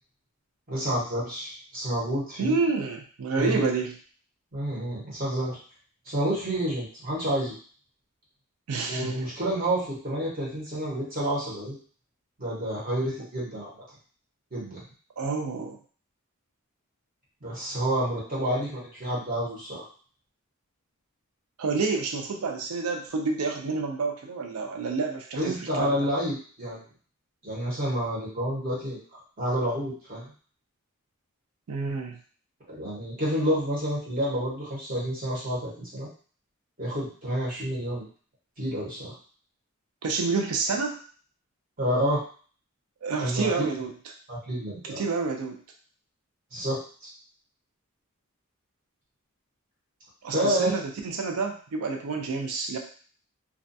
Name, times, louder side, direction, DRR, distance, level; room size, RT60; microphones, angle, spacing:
voice 1, 0.7-2.5 3.3-3.7 4.5-5.6 6.1-7.5 8.9-11.8 12.4-13.7 14.5-14.8 17.4-19.9 25.4-26.8 27.4-29.0 29.4-30.3 32.7-36.1 36.8-38.1 38.6-39.1 41.8-42.2 43.2-43.7 44.3-45.0 46.5-46.8 50.3-50.7, equal, 40° right, -6 dB, 0.9 m, -29 dB
voice 2, 2.4-3.9 8.7-9.3 15.2-15.8 21.6-26.1 31.7-32.2 40.0-41.0 43.0-43.9 44.8-45.6 50.2-52.8, right 4 dB, 90° right, 3 dB, 0.4 m, -29 dB
2.4 x 2.2 x 2.6 m, 0.43 s
head